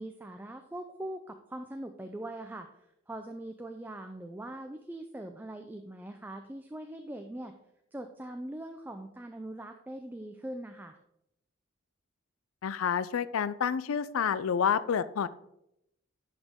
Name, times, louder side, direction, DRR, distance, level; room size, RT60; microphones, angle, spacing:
voice 1, 0.0-2.7 3.1-7.5 7.9-11.0, right 1 dB, 10° right, 6 dB, 0.4 m, -41 dB
voice 2, 12.6-15.3, left 7 dB, 85° left, 16 dB, 0.4 m, -29 dB
10.0 x 5.1 x 3.6 m, 0.82 s
head